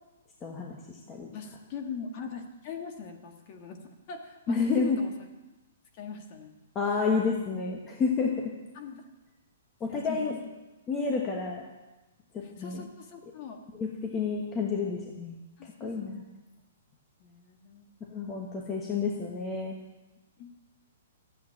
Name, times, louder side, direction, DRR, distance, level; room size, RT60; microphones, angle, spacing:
voice 1, 0.4-1.3 4.5-5.0 6.7-8.5 9.8-10.3 10.9-11.6 12.3-12.9 13.8-15.3 15.6-16.2 18.1-19.8, left 5 dB, 15° left, 0 dB, 1.3 m, -30 dB
voice 2, 1.3-3.8 4.1-5.1 5.9-6.5 8.7-9.0 9.9-10.4 12.4-13.6 15.6-16.2 17.2-18.0 20.4-20.5, left 5 dB, 35° left, 4 dB, 1.9 m, -42 dB
13.5 x 8.5 x 8.8 m, 1.1 s
hypercardioid pair, 165°, 0 cm